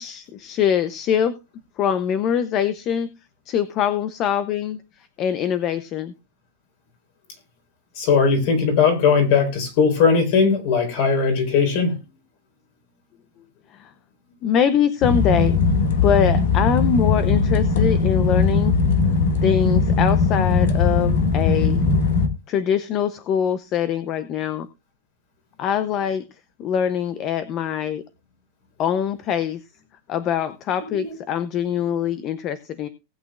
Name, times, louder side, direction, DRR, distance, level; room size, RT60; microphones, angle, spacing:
voice 1, 0.0-1.4 1.8-3.1 3.5-4.8 5.2-6.1 13.7-13.9 14.4-15.6 16.0-18.7 19.4-21.9 22.5-24.7 25.6-26.3 26.6-28.0 28.8-29.6 30.1-32.9, left 8 dB, 25° left, 14 dB, 0.7 m, -23 dB
voice 2, 8.0-12.0 30.9-31.1, left 5 dB, 45° left, 5 dB, 4.1 m, -19 dB
sound 1, 15.0-22.3, left 4 dB, 65° left, 1.9 m, -19 dB
18.5 x 8.6 x 2.4 m, 0.26 s
supercardioid pair, 175°, 0 cm